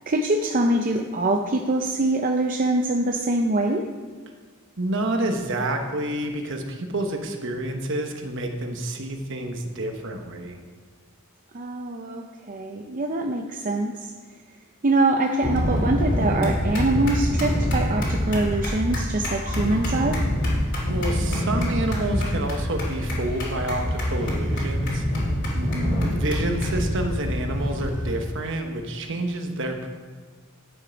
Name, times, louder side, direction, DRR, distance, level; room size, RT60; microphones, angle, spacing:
voice 1, 0.1-3.9 11.5-14.1 14.8-20.2 25.5-26.1, right 2 dB, 40° right, 3 dB, 0.5 m, -24 dB
voice 2, 4.8-10.6 20.9-25.1 26.1-29.9, right 1 dB, 60° right, 5 dB, 1.1 m, -28 dB
sound 1, 15.4-28.1, equal, 55° left, 2.9 m, -25 dB
10.5 x 7.6 x 5.2 m, 1.5 s
head